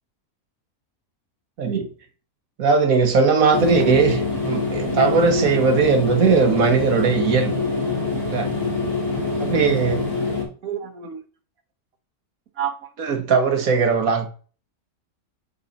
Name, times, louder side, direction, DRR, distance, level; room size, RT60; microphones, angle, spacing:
voice 1, 1.6-1.9 2.6-7.5 8.2-8.5 9.4-10.1 10.6-11.2 12.6-12.7 13.0-14.3, right 5 dB, 70° right, 1.6 m, -19 dB
sound 1, 3.5-10.4, left 3 dB, 90° left, 2.9 m, -25 dB
8.3 x 4.3 x 4.1 m
omnidirectional pair, 1.5 m